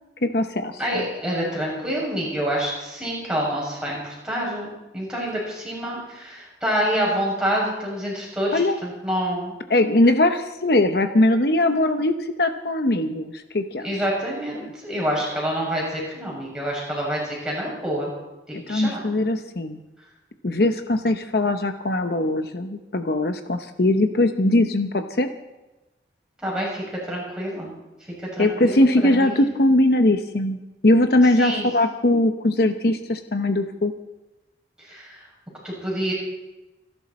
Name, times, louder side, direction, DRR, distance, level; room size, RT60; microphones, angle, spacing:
voice 1, 0.2-1.0 8.5-8.8 9.7-14.0 14.6-14.7 18.7-19.8 20.4-25.3 28.4-33.9, left 1 dB, 60° left, 7 dB, 0.8 m, -21 dB
voice 2, 0.8-9.5 13.8-18.1 18.5-19.0 26.4-27.7 28.2-29.4 31.4-31.7 34.9-35.2 35.6-36.1, equal, 5° right, -5 dB, 6.7 m, -27 dB
26.5 x 11.5 x 4.3 m, 1.1 s
head